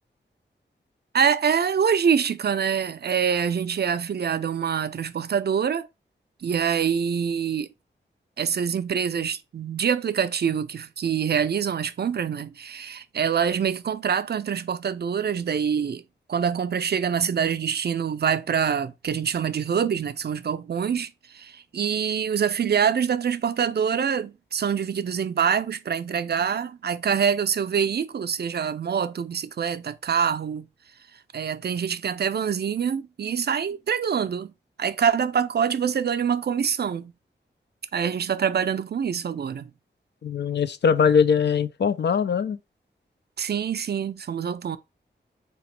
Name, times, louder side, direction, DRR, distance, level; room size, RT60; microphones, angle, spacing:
voice 1, 1.1-5.9 6.4-7.7 8.4-16.0 16.3-30.7 31.3-34.5 34.8-37.1 37.9-39.7 43.4-44.8, right 7 dB, 55° right, 0.4 m, -25 dB
voice 2, 40.2-42.6, left 6 dB, 65° left, 0.4 m, -21 dB
3.5 x 2.9 x 3.0 m
cardioid pair, 45°, 20 cm